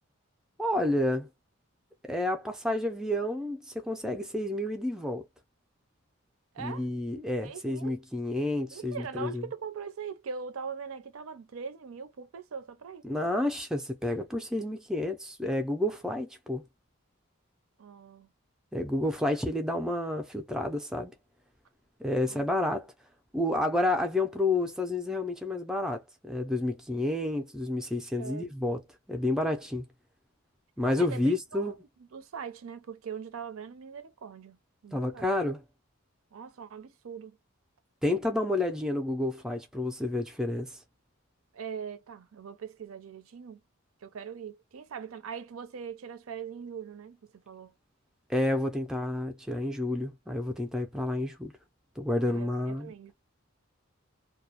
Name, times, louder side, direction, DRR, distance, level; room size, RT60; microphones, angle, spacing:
voice 1, 0.6-1.3 2.0-5.3 6.6-9.4 13.0-16.6 18.7-21.1 22.0-22.9 23.3-28.8 29.1-29.8 30.8-31.7 34.9-35.6 38.0-40.8 48.3-51.5 52.0-52.9, left 1 dB, 5° right, 0.3 m, -30 dB
voice 2, 6.5-6.9 7.4-8.0 8.7-13.0 17.8-18.3 22.3-22.4 28.2-28.5 31.0-31.2 31.5-34.6 34.8-35.3 36.3-37.4 41.5-43.6 44.0-47.2 47.5-47.7 52.3-53.1, right 6 dB, 75° right, 0.5 m, -41 dB
2.2 x 2.0 x 2.7 m
head